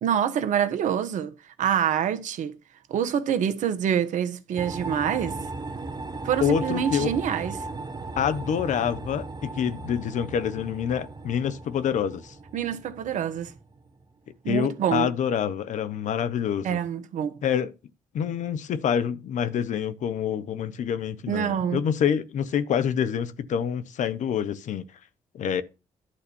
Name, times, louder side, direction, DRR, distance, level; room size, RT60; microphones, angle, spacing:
voice 1, 0.0-2.5 2.9-5.4 6.2-7.7 12.5-13.5 14.4-15.1 16.6-17.4 21.3-21.8, right 8 dB, 75° right, 1.2 m, -26 dB
sound 1, 4.6-14.1, right 3 dB, 35° right, 1.5 m, -37 dB
voice 2, 6.4-7.1 8.2-12.3 14.5-16.8 17.4-17.7 18.1-24.8 25.3-25.6, left 8 dB, 70° left, 1.0 m, -27 dB
11.5 x 4.1 x 7.0 m
supercardioid pair, 50°, 13 cm